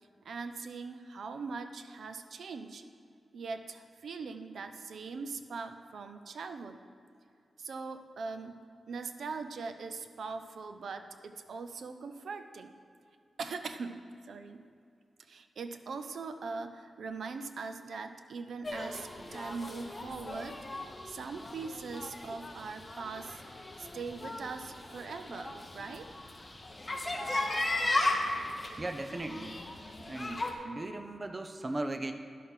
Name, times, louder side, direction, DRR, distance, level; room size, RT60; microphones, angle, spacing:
voice 1, 0.2-2.8 3.3-6.8 7.6-8.6 8.9-12.7 13.4-14.0 14.2-14.6 15.2-20.6 21.0-23.4 23.8-26.1, right 4 dB, 65° right, 8 dB, 0.6 m, -41 dB
sound 1, 18.6-30.5, left 2 dB, 15° left, 1.0 m, -36 dB
voice 2, 28.8-29.6 30.1-32.1, right 2 dB, 20° right, 7 dB, 0.4 m, -37 dB
11.0 x 6.6 x 5.8 m, 2.5 s
wide cardioid pair, 175°, 0 cm